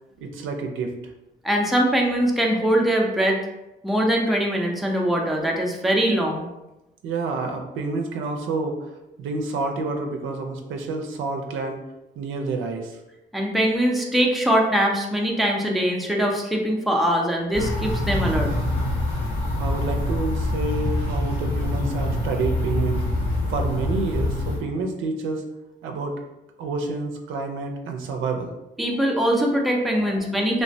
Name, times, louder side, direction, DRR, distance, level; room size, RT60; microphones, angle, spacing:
voice 1, 0.2-0.9 7.0-8.9 9.2-11.8 12.2-13.0 19.6-23.0 23.5-25.5 25.8-26.1 26.6-28.5, right 3 dB, 80° right, 3 dB, 0.5 m, -28 dB
voice 2, 1.4-3.4 3.8-6.5 13.3-18.5 28.8-30.6, equal, ahead, -1 dB, 0.5 m, -22 dB
sound 1, 17.5-24.6, left 1 dB, 85° left, 1.2 m, -25 dB
3.3 x 2.1 x 2.6 m, 0.97 s
cardioid pair, 90°, 20 cm